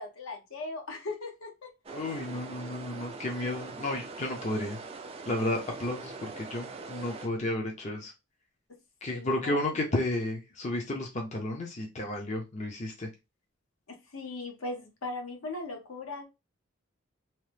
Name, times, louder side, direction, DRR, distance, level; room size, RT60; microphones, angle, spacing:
voice 1, 0.0-1.7 2.0-2.3 3.4-3.7 9.1-9.6 13.9-16.2, left 2 dB, 70° left, 0.8 m, -39 dB
sound 1, 1.8-7.3, right 4 dB, 25° right, 0.3 m, -42 dB
voice 2, 1.9-4.8 5.3-8.1 9.0-13.1, left 1 dB, 30° left, 0.5 m, -32 dB
2.8 x 2.0 x 3.2 m
head